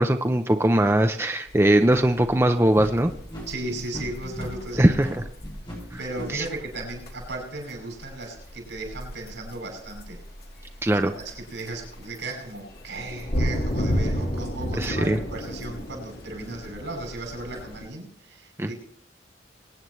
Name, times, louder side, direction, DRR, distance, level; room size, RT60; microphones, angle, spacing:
voice 1, 0.0-3.1 4.8-5.1 6.3-6.4 10.8-11.1 14.8-15.2 18.6-18.7, right 1 dB, 15° right, 6 dB, 0.5 m, -20 dB
sound 1, 1.5-17.9, equal, 55° left, 1.8 m, -33 dB
sound 2, 2.7-6.3, equal, 25° left, 5.3 m, -37 dB
voice 2, 3.5-5.2 6.0-10.2 11.0-18.7, right 2 dB, 90° right, 2 dB, 5.9 m, -36 dB
23.0 x 9.4 x 3.1 m, 0.63 s
head